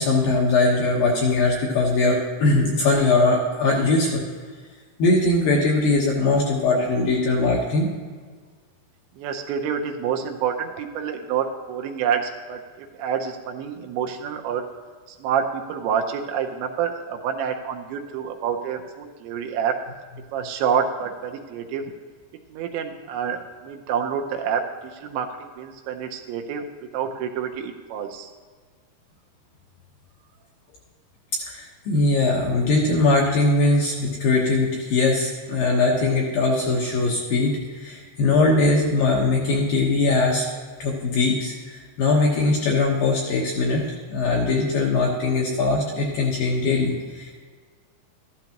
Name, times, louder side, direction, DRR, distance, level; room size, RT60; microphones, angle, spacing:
voice 1, 0.0-4.2 5.0-7.9 31.4-40.5 40.8-43.8 44.1-47.4, left 3 dB, 70° left, -2 dB, 2.3 m, -21 dB
voice 2, 9.2-14.6 15.1-19.7 20.3-21.8 22.5-24.6 25.0-26.6 26.9-28.3, right 7 dB, 80° right, 3 dB, 2.9 m, -27 dB
13.5 x 12.0 x 2.9 m, 1.5 s
omnidirectional pair, 5.4 m